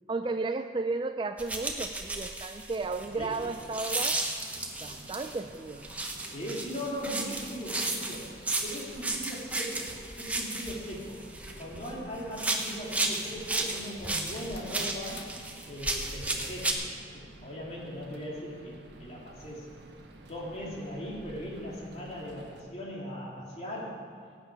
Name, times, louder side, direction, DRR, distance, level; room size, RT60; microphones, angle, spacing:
voice 1, 0.1-4.2 4.8-5.9, right 3 dB, 25° right, 8 dB, 0.3 m, -33 dB
sound 1, 1.4-5.4 5.8-12.0 12.3-16.7, right 2 dB, 10° right, 0.9 m, -34 dB
sound 2, 2.8-22.6, right 1 dB, 75° right, 1.4 m, -52 dB
voice 2, 6.3-8.3 8.6-11.2 11.6-15.2 15.7-16.9 17.1-19.7 20.2-24.0, equal, 35° left, -4 dB, 2.9 m, -39 dB
sound 3, 11.4-12.8 14.4-15.8, left 2 dB, 85° left, 1.6 m, -52 dB
17.5 x 8.9 x 4.9 m, 2.1 s
head